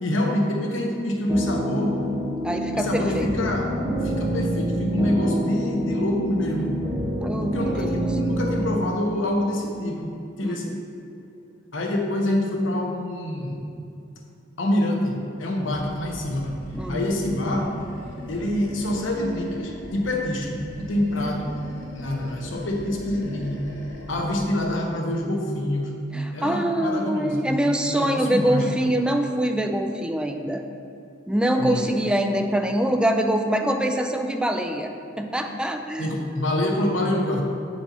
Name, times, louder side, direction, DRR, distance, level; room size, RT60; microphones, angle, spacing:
voice 1, 0.0-2.0 2.7-3.7 4.0-6.7 7.4-10.1 10.4-10.7 11.7-13.5 14.6-16.5 16.9-17.7 18.3-21.5 21.9-23.6 24.1-25.9 26.3-27.5 27.9-28.9 31.6-31.8 36.0-37.4, left 1 dB, 85° left, 1 dB, 0.9 m, -26 dB
sound 1, 1.3-8.7, right 1 dB, 30° right, 0.7 m, -27 dB
voice 2, 2.4-3.3 7.2-8.1 10.4-10.8 16.7-17.0 26.1-30.6 31.3-36.1, right 1 dB, 5° right, 5 dB, 0.3 m, -24 dB
Animal, 15.6-20.2 20.5-24.4, left 1 dB, 65° left, 1.0 m, -39 dB
6.8 x 4.3 x 4.2 m, 2.6 s
head